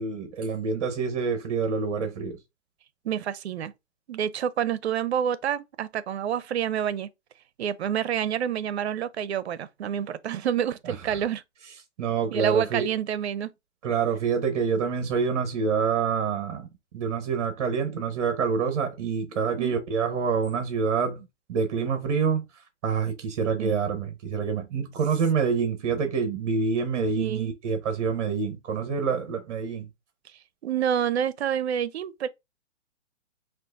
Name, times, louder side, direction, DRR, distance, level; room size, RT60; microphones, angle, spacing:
voice 1, 0.0-2.4 10.8-11.2 12.0-12.9 13.8-16.7 16.9-29.9, right 5 dB, 30° right, 0.9 m, -27 dB
voice 2, 3.0-3.7 4.1-7.1 7.6-11.4 12.3-13.5 19.6-19.7 23.6-23.8 27.2-27.5 30.6-32.3, right 9 dB, 60° right, 0.6 m, -28 dB
6.1 x 2.5 x 2.4 m
hypercardioid pair, 155°, 37 cm